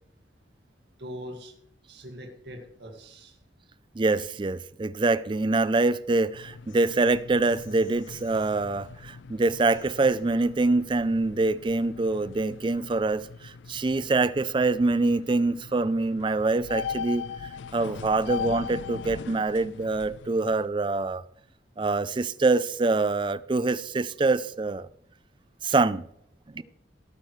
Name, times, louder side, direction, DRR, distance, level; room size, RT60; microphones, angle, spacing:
voice 1, 1.0-1.5 1.9-3.4, equal, 65° right, 1.9 m, -42 dB
voice 2, 4.0-17.3 17.7-21.2 21.8-24.9 25.6-26.0 26.5-26.6, right 3 dB, 25° right, 0.4 m, -25 dB
sound 1, 6.2-20.6, left 6 dB, 80° left, 0.4 m, -40 dB
17.5 x 9.3 x 3.2 m
head